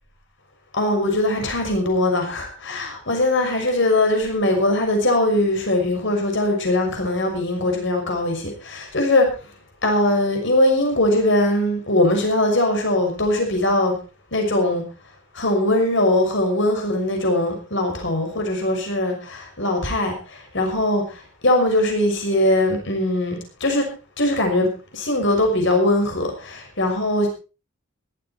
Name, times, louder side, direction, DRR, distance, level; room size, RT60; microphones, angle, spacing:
voice 1, 0.8-9.3 9.8-13.9 14.3-14.8 15.3-20.1 20.5-21.0 21.4-23.9 24.2-24.7 24.9-27.3, left 1 dB, 60° left, 3 dB, 6.2 m, -21 dB
17.0 x 13.0 x 4.5 m, 0.34 s
head